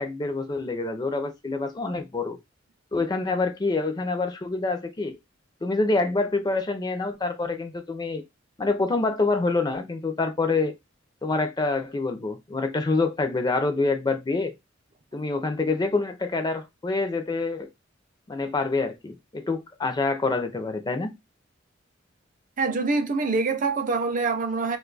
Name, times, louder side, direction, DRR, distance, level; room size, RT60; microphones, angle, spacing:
voice 1, 0.0-2.4 2.9-5.2 5.6-8.2 8.6-10.7 11.2-14.5 15.1-17.7 18.3-21.1, left 3 dB, 20° left, 0.4 m, -26 dB
voice 2, 22.6-24.8, right 3 dB, 40° right, 0.5 m, -25 dB
2.5 x 2.3 x 3.8 m
head